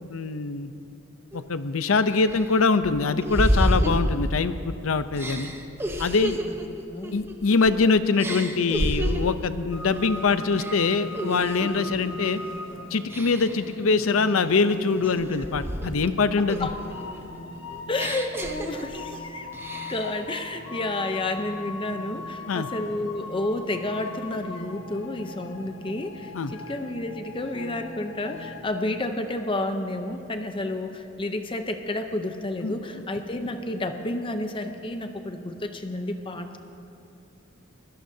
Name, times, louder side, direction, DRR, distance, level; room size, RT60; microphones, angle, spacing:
voice 1, 0.1-0.7 1.3-5.5 6.0-6.4 7.1-12.4 12.9-16.7 22.5-22.7 26.3-26.5 32.6-32.8, left 4 dB, 85° left, 12 dB, 0.6 m, -23 dB
sound 1, 1.3-1.4 1.9-4.7 5.2-7.8 8.2-9.4 9.9-10.2 10.5-11.8 12.2-12.6 13.1-13.7 14.2-16.1 16.5-19.2 19.5-20.2, equal, 10° right, 0.8 m, -30 dB
voice 2, 6.7-7.2 11.8-12.2 15.8-15.9 16.6-16.8 17.9-19.5 19.9-36.6, left 2 dB, 25° left, 6 dB, 0.7 m, -31 dB
sound 2, 9.7-28.6, left 2 dB, 65° left, 1.0 m, -40 dB
23.5 x 17.0 x 2.8 m, 2.8 s
head